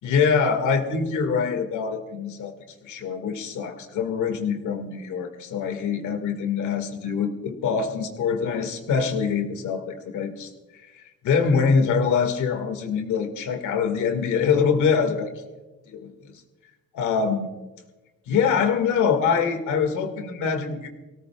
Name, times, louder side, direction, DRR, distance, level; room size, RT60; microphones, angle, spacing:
voice 1, 0.0-2.5 2.8-10.5 10.9-15.3 16.9-17.5 18.3-20.9, left 6 dB, 80° left, 6 dB, 2.0 m, -24 dB
24.0 x 17.5 x 2.4 m, 1.1 s
cardioid pair, 90°, 30 cm